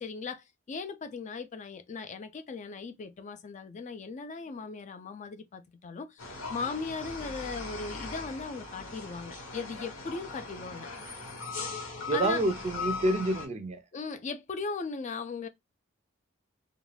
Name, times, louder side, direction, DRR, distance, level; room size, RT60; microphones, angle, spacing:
voice 1, 0.0-10.9 12.1-12.5 13.9-15.5, left 4 dB, 35° left, 0.4 m, -38 dB
sound 1, 6.2-13.5, left 4 dB, 85° left, 1.1 m, -39 dB
voice 2, 12.1-13.8, right 2 dB, 35° right, 0.4 m, -28 dB
2.4 x 2.2 x 3.1 m
head